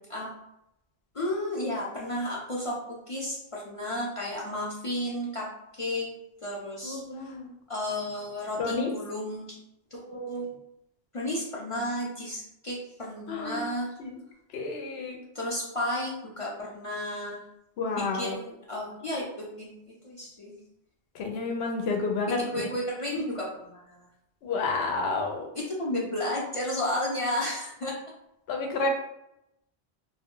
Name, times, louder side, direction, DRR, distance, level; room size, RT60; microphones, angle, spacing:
voice 1, 1.1-5.5 5.7-6.1 6.4-7.0 7.7-9.6 9.9-10.6 11.1-14.0 15.3-17.4 18.0-20.5 22.3-24.1 25.5-27.9, left 1 dB, 50° left, -4 dB, 0.4 m, -33 dB
voice 2, 6.8-7.5 8.6-8.9 13.3-13.7 14.0-14.2 14.5-15.2 17.8-18.4 21.1-22.7 24.4-25.5 28.5-28.9, left 3 dB, 85° left, 2 dB, 0.8 m, -30 dB
2.1 x 2.1 x 3.6 m, 0.83 s
omnidirectional pair, 1.0 m